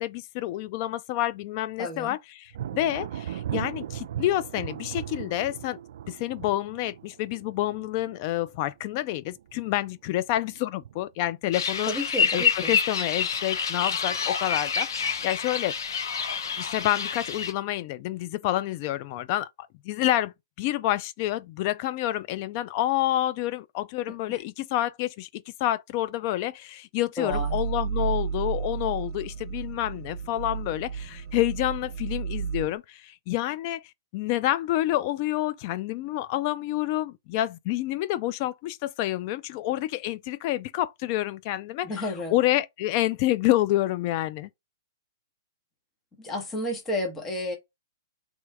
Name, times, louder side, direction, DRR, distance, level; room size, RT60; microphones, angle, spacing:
voice 1, 0.0-5.8 6.1-11.9 12.3-15.7 16.6-19.5 19.8-20.3 20.6-33.8 34.1-41.9 42.3-44.5, left 14 dB, 35° left, 0.4 m, -28 dB
voice 2, 1.8-2.2 11.9-12.8 24.1-24.4 27.2-27.6 41.8-42.4 46.2-47.6, left 1 dB, 10° left, 1.1 m, -32 dB
Thunder, 2.5-9.0 9.3-9.9 10.4-11.2, right 10 dB, 60° right, 0.4 m, -37 dB
sound 1, 11.5-17.5, left 6 dB, 75° left, 0.9 m, -27 dB
sound 2, 27.3-32.8, right 7 dB, 40° right, 0.8 m, -32 dB
3.3 x 3.1 x 4.7 m
hypercardioid pair, 155°, 2 cm